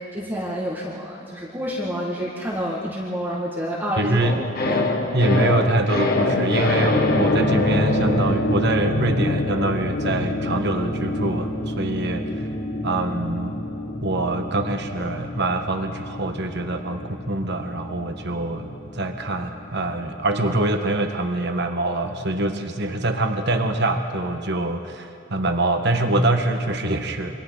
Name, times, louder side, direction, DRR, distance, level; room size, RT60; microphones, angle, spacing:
voice 1, 0.0-4.2 4.7-5.2, equal, 10° right, -5 dB, 1.9 m, -29 dB
voice 2, 4.0-4.4 5.1-12.4 12.8-13.5 14.0-27.3, right 2 dB, 55° right, 5 dB, 1.4 m, -24 dB
sound 1, 4.2-20.5 20.8-20.9, left 1 dB, 45° left, 1.4 m, -25 dB
Wind instrument woodwind instrument, 6.7-14.8, left 1 dB, 80° left, 3.6 m, -47 dB
28.5 x 24.0 x 4.0 m, 2.7 s
head